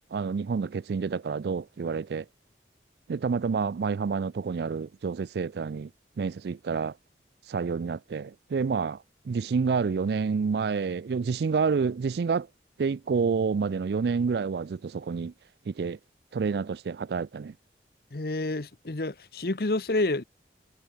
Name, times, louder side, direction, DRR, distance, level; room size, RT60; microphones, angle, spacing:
voice 1, 0.0-2.3 3.1-5.9 6.2-6.9 7.5-12.5 12.8-15.3 15.7-16.0 16.3-17.5, right 5 dB, 65° right, 0.4 m, -28 dB
voice 2, 18.1-20.2, left 2 dB, 60° left, 1.0 m, -29 dB
head